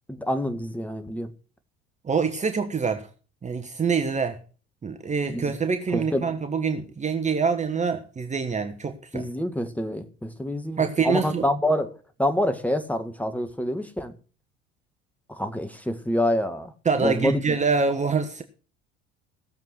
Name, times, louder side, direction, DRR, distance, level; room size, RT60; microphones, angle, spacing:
voice 1, 0.1-1.3 5.3-5.5 5.9-6.3 9.1-14.1 15.3-16.7 17.0-17.4, left 1 dB, 5° left, 1.9 m, -27 dB
voice 2, 2.0-3.1 3.4-4.4 4.8-9.3 10.8-11.4 16.8-18.4, right 5 dB, 20° right, 1.3 m, -25 dB
17.5 x 7.4 x 6.0 m
figure-of-eight pair, 60°, 32 cm